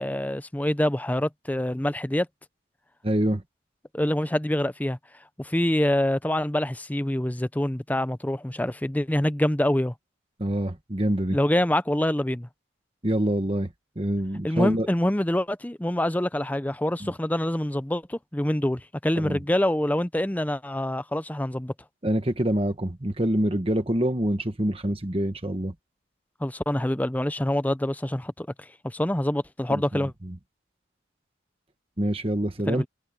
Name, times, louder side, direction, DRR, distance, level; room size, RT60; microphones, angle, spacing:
voice 1, 0.0-2.3 3.9-5.0 5.4-9.9 11.3-12.5 14.4-21.7 26.4-30.1 32.7-32.9, left 1 dB, 10° left, 0.5 m, -26 dB
voice 2, 3.0-3.4 10.4-11.4 13.0-13.7 14.0-14.9 17.0-17.1 19.2-19.4 22.0-25.7 29.7-30.3 32.0-32.8, right 1 dB, 30° right, 1.3 m, -26 dB
head